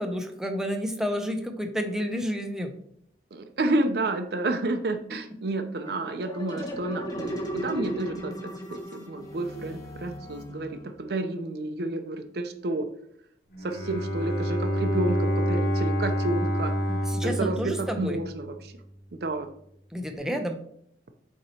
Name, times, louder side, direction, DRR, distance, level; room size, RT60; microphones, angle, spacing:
voice 1, 0.0-2.7 16.9-18.2 19.9-20.6, equal, 5° right, 4 dB, 0.6 m, -30 dB
voice 2, 3.3-12.9 13.6-16.7 17.2-18.7 19.1-19.5, right 2 dB, 60° right, 6 dB, 0.5 m, -30 dB
sound 1, 5.8-11.1, right 1 dB, 20° left, 0.9 m, -36 dB
Bowed string instrument, 13.5-18.5, equal, 60° left, 1.2 m, -28 dB
7.9 x 2.9 x 4.3 m, 0.69 s
head